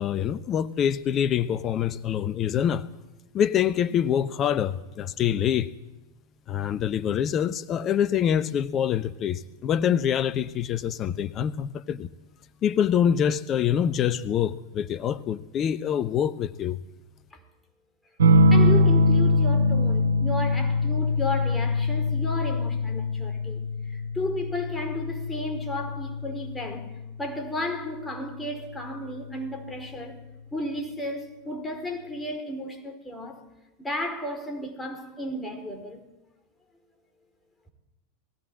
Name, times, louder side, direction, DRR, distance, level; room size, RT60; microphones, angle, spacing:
voice 1, 0.0-2.8 3.3-5.7 6.5-12.1 12.6-16.8, left 9 dB, 30° left, 0.8 m, -25 dB
sound 1, 18.2-27.3 28.7-29.3, left 1 dB, 65° right, 1.3 m, -23 dB
voice 2, 18.5-30.2 30.5-33.4 33.8-36.0, left 1 dB, 10° left, 4.5 m, -33 dB
20.5 x 16.0 x 8.7 m
figure-of-eight pair, 90°, 0 cm